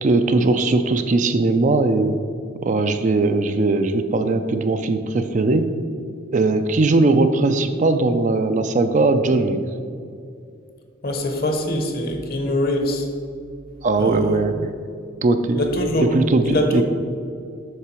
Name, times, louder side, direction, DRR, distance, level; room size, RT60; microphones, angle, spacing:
voice 1, 0.0-2.1 2.6-5.7 6.3-9.6 13.8-14.7 15.2-15.6 16.0-16.8, right 3 dB, 35° right, 8 dB, 0.4 m, -19 dB
voice 2, 11.0-13.1 14.0-14.4 15.5-16.1 16.4-16.8, left 1 dB, 50° left, 4 dB, 1.0 m, -23 dB
8.3 x 5.8 x 4.4 m, 2.4 s
head